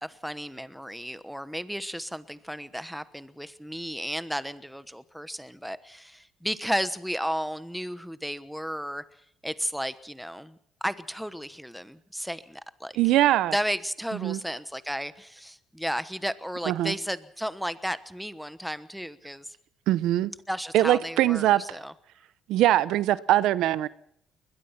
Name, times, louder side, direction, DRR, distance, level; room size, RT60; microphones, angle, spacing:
voice 1, 0.0-9.0 9.4-13.0 13.5-19.6 20.5-21.9, equal, ahead, 1.1 m, -33 dB
voice 2, 13.0-13.5 14.2-14.4 16.7-16.9 19.9-20.3 20.7-21.6 22.5-23.9, right 14 dB, 80° right, 0.8 m, -22 dB
21.5 x 21.0 x 5.8 m
cardioid pair, 115°, 0 cm